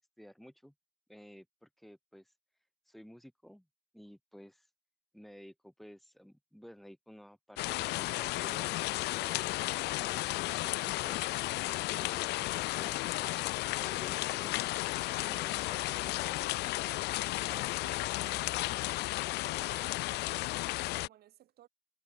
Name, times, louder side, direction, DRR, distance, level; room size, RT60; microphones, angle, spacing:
voice 1, 0.2-0.7 1.1-2.3 2.9-3.7 3.9-4.7 5.1-8.7 15.3-16.4, equal, ahead, 2.9 m, -54 dB
sound 1, 7.6-21.1, left 19 dB, 85° left, 0.8 m, -33 dB
voice 2, 16.0-17.1 17.5-21.7, right 13 dB, 70° right, 6.2 m, -57 dB
cardioid pair, 110°, 17 cm